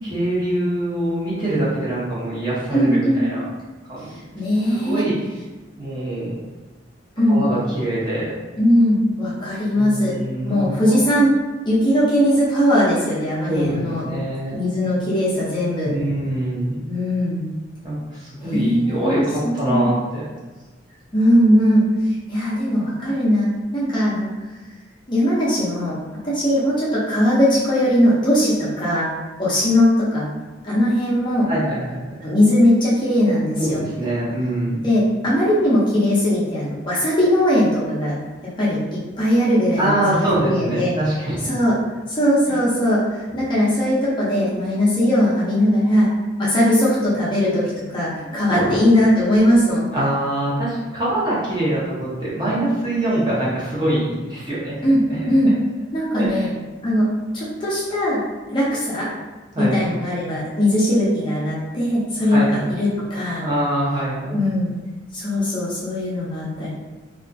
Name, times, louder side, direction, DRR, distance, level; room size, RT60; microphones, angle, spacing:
voice 1, 0.0-3.4 3.9-4.4 4.9-5.1 5.8-6.4 7.3-8.4 9.8-11.0 13.4-14.6 15.8-16.8 17.8-20.3 31.5-32.2 33.6-34.8 39.8-41.4 48.2-48.8 49.9-54.8 55.1-55.3 56.1-56.5 59.5-60.0 62.3-62.8 63.4-64.4, right 1 dB, 20° right, -9 dB, 0.8 m, -24 dB
voice 2, 2.7-3.2 4.4-5.0 7.2-7.4 8.6-10.1 10.4-11.3 11.7-14.0 14.5-15.9 16.9-17.4 18.4-19.9 21.1-21.9 22.3-23.5 23.7-24.3 25.1-26.0 26.2-29.1 29.4-30.3 30.6-31.5 32.2-33.8 34.8-38.2 38.6-40.9 41.5-41.7 42.1-46.1 46.4-49.8 54.8-55.5 55.9-56.5 56.8-57.1 57.3-58.2 58.5-59.1 59.6-63.5 64.3-64.7 65.1-66.7, equal, 25° left, -8 dB, 0.5 m, -19 dB
2.7 x 2.3 x 2.5 m, 1.2 s
head